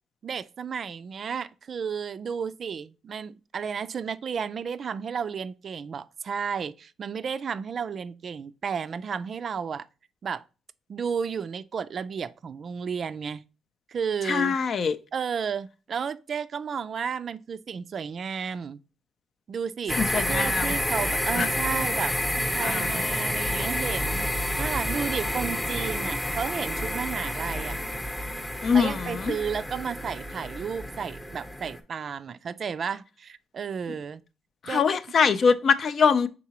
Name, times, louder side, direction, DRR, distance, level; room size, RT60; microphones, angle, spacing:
voice 1, 0.2-9.9 10.2-10.4 10.9-13.4 13.9-14.6 15.1-18.8 19.5-27.8 28.7-34.2 34.7-34.8, right 6 dB, 50° right, 0.3 m, -33 dB
voice 2, 14.2-15.0 19.9-20.7 21.4-21.5 22.6-23.0 28.6-29.3 34.6-36.3, left 6 dB, 50° left, 0.4 m, -23 dB
sound 1, 19.9-31.8, left 1 dB, 15° left, 0.8 m, -29 dB
4.7 x 3.8 x 2.8 m
cardioid pair, 90°, 0 cm